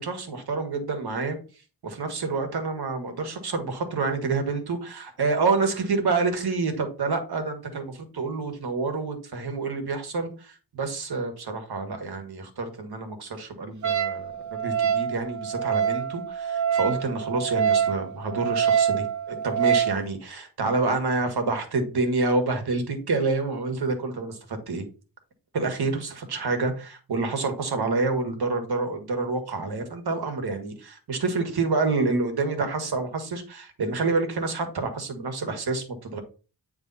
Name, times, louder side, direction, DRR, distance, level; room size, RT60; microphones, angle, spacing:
voice 1, 0.0-1.4 1.8-24.8 25.5-36.2, right 3 dB, 60° right, 6 dB, 1.6 m, -28 dB
Wind instrument woodwind instrument, 13.8-20.0, right 8 dB, 40° right, 0.8 m, -25 dB
9.0 x 3.4 x 4.1 m, 0.36 s
wide cardioid pair, 100°, 43 cm